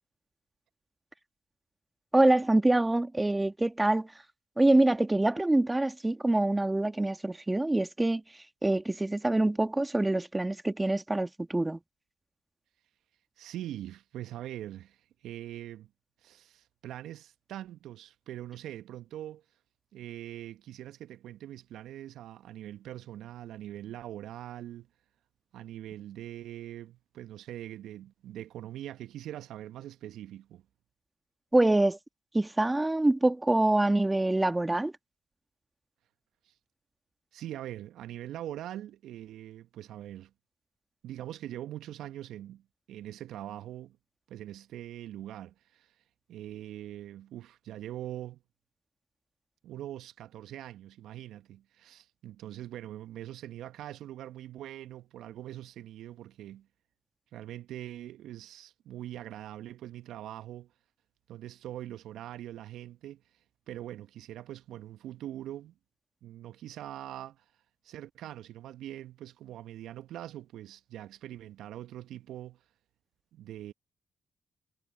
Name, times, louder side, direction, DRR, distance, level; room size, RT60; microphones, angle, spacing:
voice 1, 2.1-4.1 4.6-8.2 8.6-11.8 31.5-32.0 32.3-34.9, right 2 dB, 15° right, 2.0 m, -25 dB
voice 2, 13.4-15.9 16.2-19.4 19.9-24.9 25.5-30.6 36.4-36.6 37.3-40.3 41.0-42.6 42.9-44.0 44.3-46.0 46.3-48.4 49.6-56.7 57.3-60.7 61.3-65.7 66.2-67.5 67.8-72.6 73.3-73.7, right 13 dB, 70° right, 1.1 m, -43 dB
hypercardioid pair, 40°, 0 cm